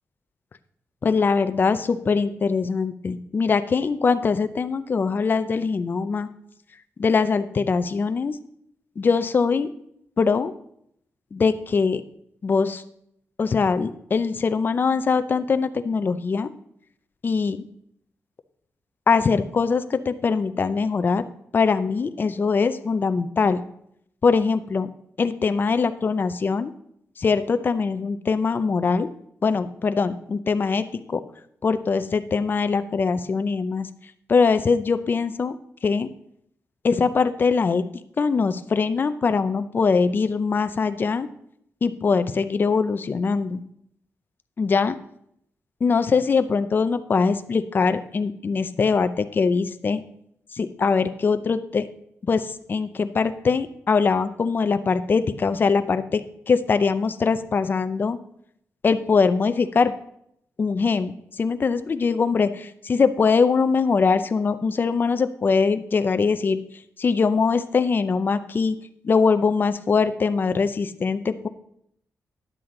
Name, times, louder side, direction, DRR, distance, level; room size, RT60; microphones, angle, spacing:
voice 1, 1.0-6.3 7.0-8.4 9.0-9.7 10.2-10.5 11.3-12.0 12.4-12.8 13.4-16.5 17.2-17.6 19.1-21.2 21.5-23.6 24.2-24.9 25.2-26.7 27.2-29.1 29.4-31.2 31.6-33.9 34.3-35.6 35.8-36.1 36.8-37.8 38.2-41.3 41.8-43.6 44.6-45.0 45.8-50.0 50.5-51.9 52.3-58.2 58.8-59.9 60.6-66.6 67.0-68.8 69.0-71.5, left 5 dB, 40° left, 11 dB, 0.5 m, -22 dB
10.5 x 7.6 x 3.8 m, 0.72 s
cardioid pair, 110°, 5 cm